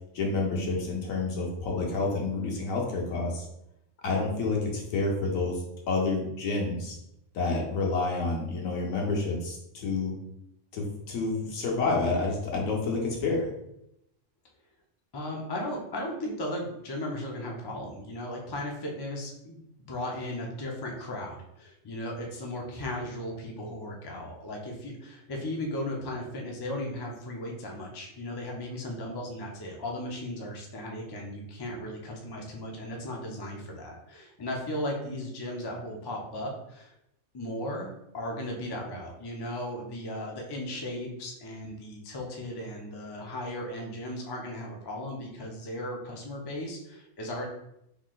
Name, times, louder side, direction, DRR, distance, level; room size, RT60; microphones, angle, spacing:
voice 1, 0.1-3.5 4.0-7.0 7.3-10.1 10.7-13.5, left 3 dB, 80° left, -1 dB, 1.3 m, -29 dB
voice 2, 15.1-36.9 37.3-47.5, left 1 dB, 35° left, 0 dB, 0.3 m, -36 dB
3.8 x 3.1 x 2.4 m, 0.80 s
omnidirectional pair, 1.4 m